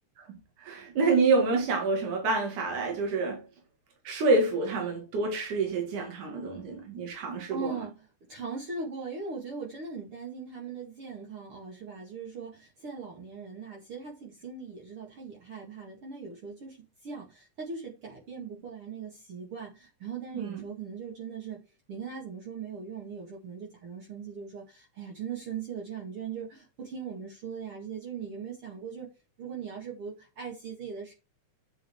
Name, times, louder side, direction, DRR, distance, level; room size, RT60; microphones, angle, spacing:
voice 1, 0.2-3.4 4.1-7.7 20.3-20.6, right 3 dB, 85° right, 3.6 m, -27 dB
voice 2, 7.5-21.6 21.9-29.1 29.4-31.1, right 5 dB, 50° right, 2.7 m, -40 dB
8.9 x 6.4 x 4.6 m
omnidirectional pair, 3.4 m